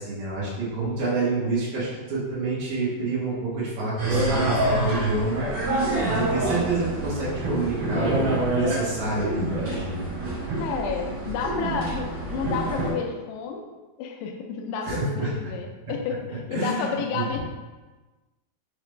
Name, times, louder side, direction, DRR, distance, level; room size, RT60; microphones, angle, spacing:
voice 1, 0.0-5.5 6.0-10.0 14.8-15.5 16.5-17.4, right 2 dB, 70° right, -10 dB, 1.8 m, -28 dB
sound 1, 4.0-12.9, right 2 dB, 55° right, 1.9 m, -27 dB
voice 2, 10.6-13.7 14.0-17.4, left 6 dB, 85° left, 3 dB, 2.6 m, -31 dB
6.3 x 2.4 x 3.1 m, 1.2 s
omnidirectional pair, 4.8 m